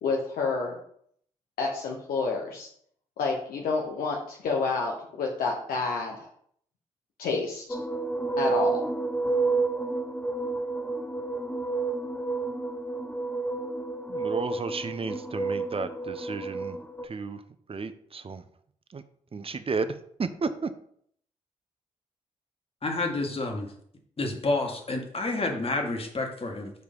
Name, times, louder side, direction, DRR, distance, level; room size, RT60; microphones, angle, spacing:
voice 1, 0.0-0.8 1.6-2.7 3.2-6.3 7.2-7.6 8.4-8.8, left 4 dB, 75° left, -1 dB, 1.1 m, -29 dB
sound 1, 7.7-17.0, right 3 dB, 10° left, 0.7 m, -30 dB
voice 2, 14.1-16.8 17.0-17.4 17.7-18.4 18.9-19.0 19.3-20.7, right 4 dB, 40° right, 11 dB, 0.8 m, -33 dB
voice 3, 22.8-23.7 24.2-26.7, left 2 dB, 40° left, 3 dB, 1.9 m, -29 dB
4.8 x 4.7 x 5.5 m, 0.64 s
supercardioid pair, 45°, 15 cm